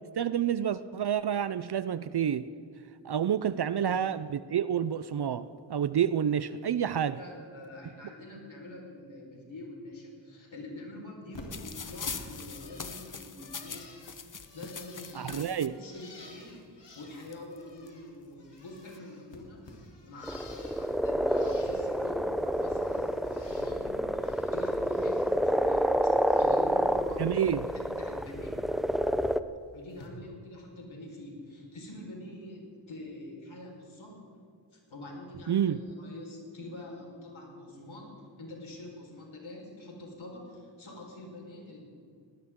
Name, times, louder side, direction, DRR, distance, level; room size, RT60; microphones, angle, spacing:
voice 1, 0.2-2.5 3.0-7.2 15.1-15.7 27.2-27.6 35.5-35.8, right 9 dB, 60° right, 14 dB, 0.6 m, -29 dB
voice 2, 7.1-13.9 14.5-19.6 20.0-26.1 26.4-28.6 29.7-34.2 34.7-41.8, left 1 dB, 85° left, -1 dB, 4.7 m, -45 dB
Bird, 11.3-18.1 18.4-20.9 21.2-22.1 22.4-23.8 24.1-25.3 25.6-26.7 27.1-27.5 28.8-28.9 29.9-30.1, left 2 dB, 65° left, 3.4 m, -52 dB
sound 1, 11.5-15.7 16.6-16.7 16.9-17.9 18.6-19.0, left 6 dB, 40° left, 1.0 m, -42 dB
sound 2, 20.2-29.4, equal, ahead, 0.6 m, -28 dB
20.0 x 18.5 x 3.7 m, 2.2 s
cardioid pair, 60°, 46 cm